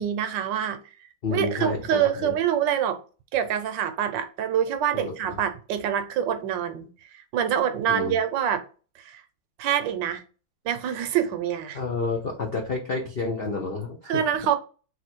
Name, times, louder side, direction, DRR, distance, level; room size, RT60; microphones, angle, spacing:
voice 1, 0.0-3.0 3.3-6.9 7.1-8.6 9.0-9.2 9.6-10.2 10.6-11.8 14.1-14.6, right 9 dB, 75° right, 1.3 m, -26 dB
voice 2, 1.2-2.3 4.9-5.4 7.9-8.1 11.7-14.2, left 3 dB, 70° left, 0.5 m, -30 dB
4.1 x 2.6 x 4.4 m
omnidirectional pair, 2.1 m